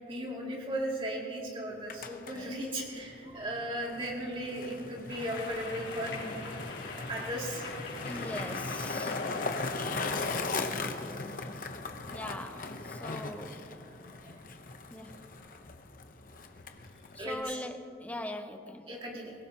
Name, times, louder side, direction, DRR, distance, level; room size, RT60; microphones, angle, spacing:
voice 1, 0.1-6.4 7.1-7.7 8.1-8.2 17.2-17.6 18.9-19.3, right 1 dB, 30° right, -3 dB, 2.5 m, -36 dB
Skateboard, 1.7-17.4, left 3 dB, 50° left, 0.9 m, -38 dB
sound 1, 5.1-10.3, left 3 dB, 80° left, 3.9 m, -44 dB
voice 2, 8.0-9.2 12.1-13.6 14.9-15.2 17.1-18.9, left 1 dB, 10° left, 6 dB, 0.7 m, -41 dB
23.0 x 16.5 x 2.9 m, 2.6 s
head